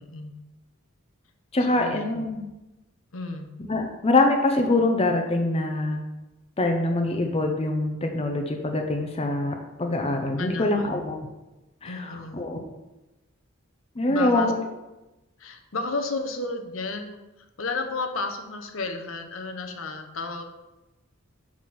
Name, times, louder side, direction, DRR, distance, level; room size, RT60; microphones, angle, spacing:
voice 1, 0.0-0.3 1.7-2.2 3.1-3.5 10.4-11.0 11.8-12.5 14.1-14.5 15.4-20.4, left 3 dB, 70° left, 5 dB, 0.9 m, -32 dB
voice 2, 1.5-2.4 3.7-6.0 6.6-11.3 11.8-12.6 14.0-14.5, left 2 dB, 30° left, 3 dB, 0.7 m, -24 dB
6.4 x 6.0 x 4.2 m, 1.0 s
head